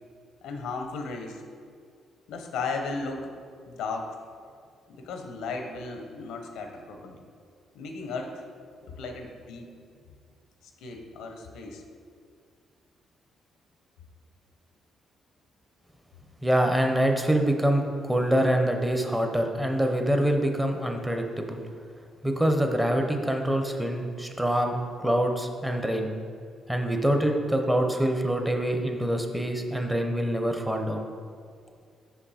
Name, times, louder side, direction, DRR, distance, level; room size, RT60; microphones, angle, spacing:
voice 1, 0.4-1.4 2.3-3.3 3.7-4.2 4.9-7.2 7.7-8.4 8.9-9.7 10.6-11.8, left 4 dB, 85° left, 4 dB, 0.7 m, -35 dB
voice 2, 16.4-21.6 22.2-26.1 26.7-31.1, right 1 dB, 10° right, 4 dB, 0.7 m, -25 dB
5.8 x 5.3 x 4.2 m, 2.2 s
cardioid pair, 90°, 0 cm